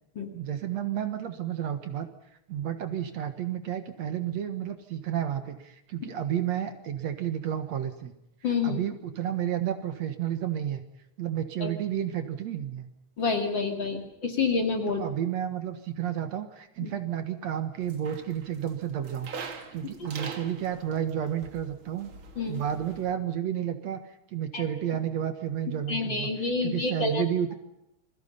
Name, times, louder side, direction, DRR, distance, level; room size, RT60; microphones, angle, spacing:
voice 1, 0.3-2.1 2.5-8.1 8.6-10.8 11.2-12.9 14.9-19.3 19.7-22.1 22.5-26.3 26.6-27.5, right 10 dB, 65° right, 9 dB, 2.6 m, -31 dB
voice 2, 8.4-8.8 11.6-11.7 13.2-15.0 16.8-16.9 20.0-20.1 22.4-22.6 24.5-24.7 25.9-27.2, left 4 dB, 40° left, 4 dB, 2.9 m, -28 dB
sound 1, 17.8-23.1, right 5 dB, 45° right, 2.5 m, -43 dB
28.0 x 22.0 x 5.6 m, 0.84 s
omnidirectional pair, 3.5 m